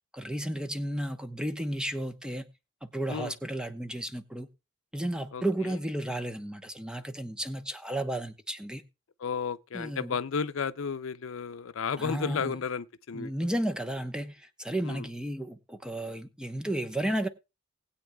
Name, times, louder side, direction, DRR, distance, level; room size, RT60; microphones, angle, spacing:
voice 1, 0.1-2.5 2.8-4.5 4.9-8.8 9.7-10.1 12.0-12.5 13.1-17.3, right 1 dB, 5° right, 0.9 m, -33 dB
voice 2, 5.3-5.8 9.2-13.3 14.8-15.1, left 6 dB, 85° left, 0.5 m, -33 dB
19.5 x 8.7 x 2.3 m
head